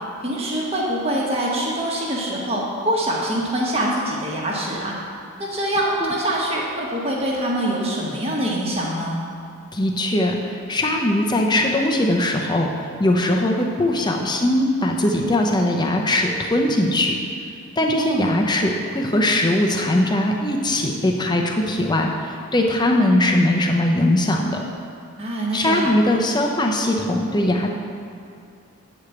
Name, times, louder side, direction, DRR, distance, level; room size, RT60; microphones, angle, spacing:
voice 1, 0.2-4.9 5.4-9.2 18.0-18.5 25.2-25.9, right 1 dB, 25° right, -3 dB, 1.3 m, -24 dB
voice 2, 9.7-17.2 17.8-24.7 25.5-27.7, left 1 dB, 20° left, 1 dB, 0.7 m, -20 dB
8.0 x 5.0 x 7.1 m, 2.5 s
head